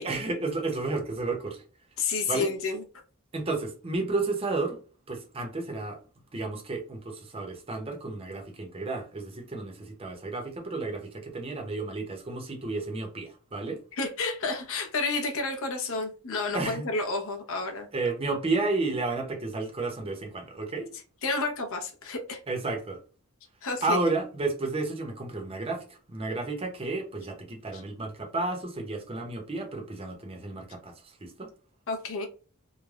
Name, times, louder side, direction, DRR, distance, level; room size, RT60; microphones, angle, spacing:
voice 1, 0.0-1.6 2.3-2.5 3.3-4.8 5.1-6.0 6.3-13.8 16.5-16.9 17.9-20.9 22.5-23.0 23.8-31.5, right 3 dB, 25° right, 0.7 m, -32 dB
voice 2, 2.0-2.8 14.0-17.9 21.2-22.4 23.6-24.0 27.7-27.8 31.9-32.3, left 3 dB, 65° left, 0.7 m, -30 dB
3.2 x 2.1 x 2.3 m
head